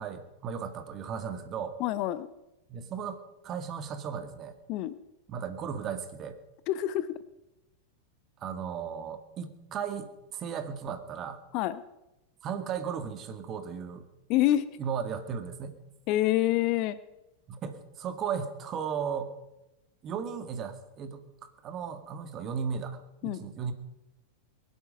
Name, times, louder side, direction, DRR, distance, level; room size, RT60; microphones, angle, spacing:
voice 1, 0.0-1.8 2.7-3.2 3.4-4.5 5.3-6.4 8.4-11.4 12.4-14.1 14.8-15.8 17.5-19.3 20.0-23.7, right 7 dB, 30° right, 8 dB, 2.0 m, -36 dB
voice 2, 1.8-2.3 4.7-5.0 6.7-7.2 11.5-11.8 14.3-14.7 16.1-17.0 23.2-23.5, left 14 dB, 40° left, 15 dB, 0.8 m, -27 dB
22.5 x 12.0 x 5.4 m, 0.96 s
figure-of-eight pair, 90°, 0 cm